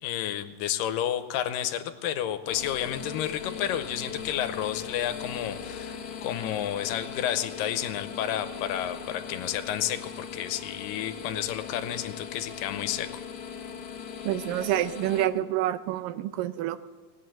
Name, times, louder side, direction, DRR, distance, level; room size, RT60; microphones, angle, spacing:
voice 1, 0.0-6.0 6.2-13.1, left 11 dB, 85° left, 10 dB, 2.4 m, -31 dB
sound 1, 2.4-15.2, left 7 dB, 45° left, 1.5 m, -39 dB
voice 2, 14.3-16.8, right 13 dB, 85° right, 13 dB, 2.3 m, -28 dB
19.0 x 8.3 x 7.8 m, 1.5 s
omnidirectional pair, 3.9 m